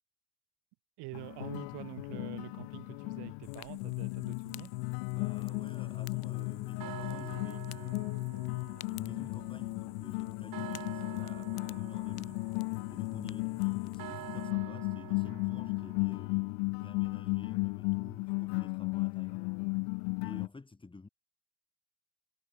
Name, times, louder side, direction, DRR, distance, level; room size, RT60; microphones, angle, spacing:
voice 1, 1.0-4.8, right 25 dB, 75° right, 6.7 m, -46 dB
sound 1, 1.1-20.5, left 40 dB or more, 80° left, 0.8 m, -35 dB
Fire, 3.4-14.5, left 19 dB, 65° left, 2.6 m, -56 dB
voice 2, 5.1-8.2 8.9-12.4 12.9-19.5 20.2-21.1, left 3 dB, 10° left, 1.8 m, -50 dB
sound 2, 5.5-16.7, right 14 dB, 55° right, 5.3 m, -49 dB
cardioid pair, 120°, 40 cm